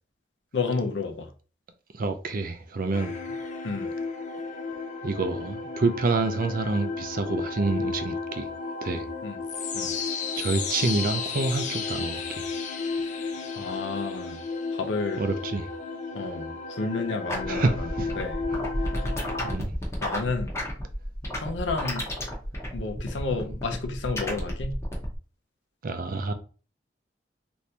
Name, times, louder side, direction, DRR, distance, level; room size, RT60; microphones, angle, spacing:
voice 1, 0.5-1.3 3.6-3.9 9.2-9.4 9.7-9.9 13.6-14.4 14.7-15.3 16.1-18.4 20.0-20.5 21.4-22.1 22.7-24.8, left 3 dB, 90° left, 0.6 m, -31 dB
voice 2, 1.9-3.2 5.0-8.5 8.8-9.0 10.4-12.4 15.2-15.7 17.5-18.1 19.4-19.7 25.8-26.3, right 3 dB, 50° right, 0.5 m, -27 dB
sound 1, 2.9-19.5, left 4 dB, 45° left, 0.4 m, -33 dB
sound 2, 17.3-25.2, left 1 dB, 15° left, 0.8 m, -33 dB
3.3 x 2.6 x 2.8 m
head